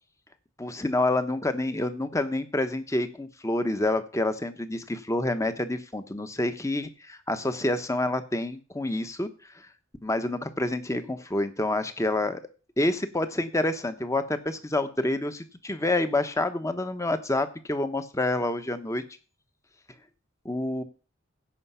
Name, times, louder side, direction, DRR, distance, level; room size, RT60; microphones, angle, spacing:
voice 1, 0.6-9.3 9.5-9.7 10.0-12.4 12.8-19.0 20.4-20.8, left 2 dB, 15° left, 10 dB, 0.9 m, -28 dB
16.0 x 5.8 x 5.6 m, 0.35 s
head